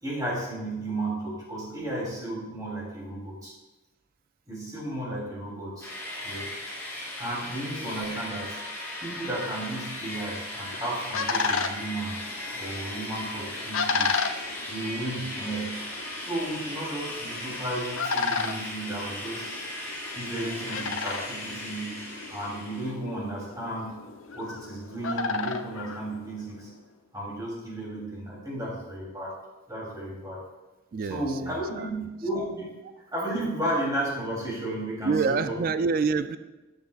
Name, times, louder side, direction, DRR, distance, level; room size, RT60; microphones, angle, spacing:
voice 1, 0.0-3.5 4.5-5.9 6.2-6.5 7.2-8.5 9.0-14.2 14.7-15.8 16.2-19.6 20.1-22.1 22.3-24.0 24.3-26.7 27.1-29.3 29.7-30.4 31.1-32.7 33.0-35.6, right 1 dB, 20° right, -5 dB, 3.0 m, -33 dB
sound 1, 5.8-22.9, left 1 dB, 15° left, 2.6 m, -37 dB
sound 2, 10.5-26.7, left 4 dB, 80° left, 0.6 m, -34 dB
voice 2, 30.9-31.9 35.0-36.4, right 4 dB, 45° right, 12 dB, 0.3 m, -27 dB
12.5 x 8.0 x 2.4 m, 1.1 s
head